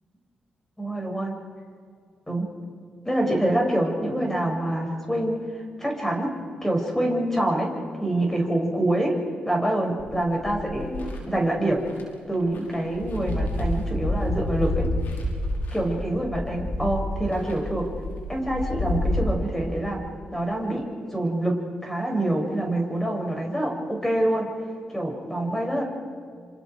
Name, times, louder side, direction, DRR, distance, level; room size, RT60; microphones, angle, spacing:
voice 1, 0.8-1.3 2.3-2.5 3.0-5.4 5.8-6.3 6.6-7.7 8.0-9.2 9.4-11.8 12.3-14.9 15.7-17.9 18.3-20.0 20.3-20.8 21.1-24.5 24.9-25.8, right 1 dB, 10° left, 1 dB, 6.6 m, -26 dB
sound 1, 10.0-11.2 11.9-12.0 12.3-19.2, left 1 dB, 85° left, 5.0 m, -29 dB
28.0 x 26.0 x 4.9 m, 2.1 s
cardioid pair, 60°, 3 cm